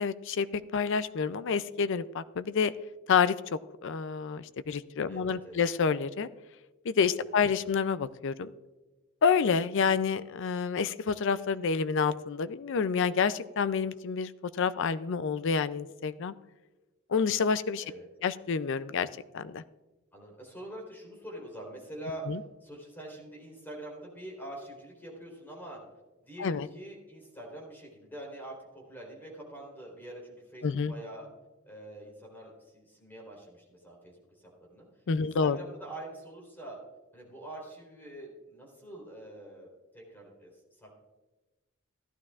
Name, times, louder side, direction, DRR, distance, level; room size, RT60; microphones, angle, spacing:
voice 1, 0.0-2.7 3.1-3.3 3.8-6.3 6.9-8.5 9.2-14.3 14.6-16.3 17.1-17.8 18.2-19.1 19.3-19.6 22.3-22.4 26.4-26.7 30.6-30.9 35.1-35.6, left 6 dB, 60° left, 14 dB, 0.4 m, -28 dB
voice 2, 5.1-5.7 7.3-7.6 17.8-18.1 20.1-25.8 26.3-31.3 31.6-34.2 34.4-34.9 35.1-36.8 37.1-39.7 39.9-40.5 40.8-41.0, right 1 dB, 10° left, -2 dB, 3.6 m, -45 dB
15.5 x 11.5 x 2.4 m, 1.2 s
head